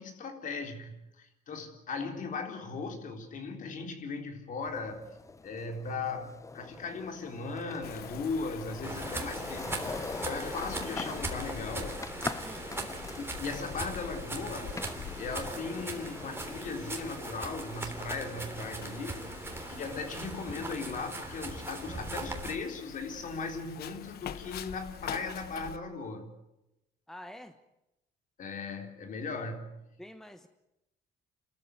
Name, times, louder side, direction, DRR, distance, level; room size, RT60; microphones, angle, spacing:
voice 1, 0.0-5.0 5.4-9.8 10.2-12.0 13.2-14.9 15.2-19.2 19.7-26.3 28.4-29.7, left 4 dB, 50° left, 5 dB, 3.8 m, -38 dB
sound 1, 4.6-18.7, left 3 dB, 20° left, 0.8 m, -43 dB
Wind, 7.8-25.8, left 9 dB, 70° left, 1.3 m, -46 dB
sound 2, 8.8-22.6, right 2 dB, 15° right, 3.4 m, -40 dB
voice 2, 12.4-12.7 27.1-27.6 29.3-29.4 30.0-30.5, equal, ahead, 9 dB, 1.2 m, -47 dB
28.0 x 14.0 x 9.5 m, 0.92 s
cardioid pair, 110°, 17 cm